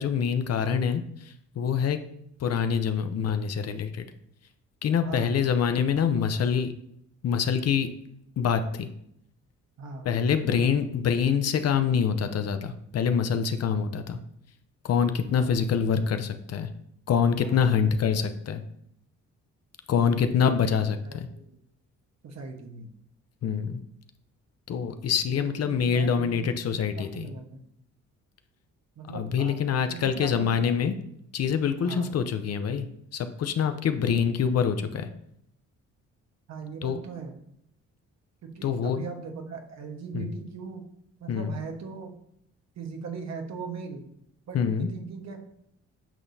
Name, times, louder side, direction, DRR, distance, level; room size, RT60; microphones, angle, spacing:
voice 1, 0.0-2.0 2.4-4.1 4.8-6.7 7.2-7.9 8.4-8.9 10.0-14.2 14.8-16.7 17.1-18.6 19.9-21.3 23.4-23.8 24.7-27.3 29.1-30.9 31.3-32.9 33.1-35.1 36.8-37.0 38.6-39.1 40.1-40.3 41.3-41.5 44.5-44.9, left 7 dB, 55° left, 9 dB, 0.8 m, -25 dB
voice 2, 5.0-5.4 9.8-10.7 15.4-15.6 17.4-17.9 20.1-20.7 21.0-21.6 22.2-22.9 25.2-27.6 29.0-29.6 29.9-30.7 31.8-32.1 36.5-37.3 38.4-40.9 41.2-42.1 42.8-44.0 44.5-45.4, right 5 dB, 60° right, 3 dB, 1.4 m, -40 dB
9.0 x 6.2 x 2.8 m, 0.73 s
cardioid pair, 90°, 30 cm